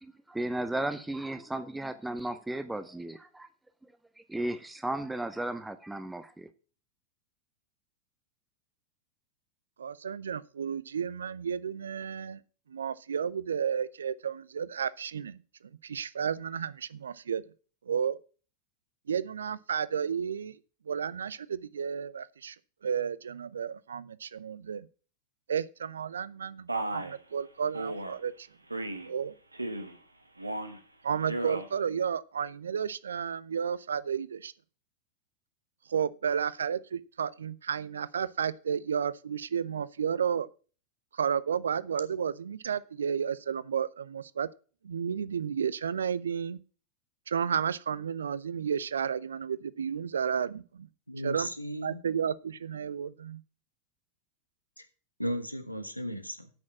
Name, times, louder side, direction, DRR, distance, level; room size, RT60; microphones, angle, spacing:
voice 1, 0.0-3.5 4.2-6.5, right 1 dB, 5° right, 0.7 m, -35 dB
voice 2, 9.8-12.4 12.7-15.4 15.8-17.4 17.9-18.2 19.1-20.6 20.9-22.6 22.8-24.9 25.5-28.5 29.0-29.3 31.0-34.5 35.9-40.5 41.1-44.5 44.8-46.6 47.3-50.9 51.2-51.5 51.8-53.4, right 7 dB, 70° right, 0.5 m, -32 dB
Male speech man speaking, 26.7-27.2 27.7-28.1 28.7-29.1 29.5-30.0 30.4-30.8 31.2-31.7, right 2 dB, 85° right, 1.2 m, -34 dB
voice 3, 51.1-52.0 54.8-54.9 55.2-56.5, equal, 90° left, 1.2 m, -35 dB
8.5 x 6.4 x 7.2 m
figure-of-eight pair, 90°, 0 cm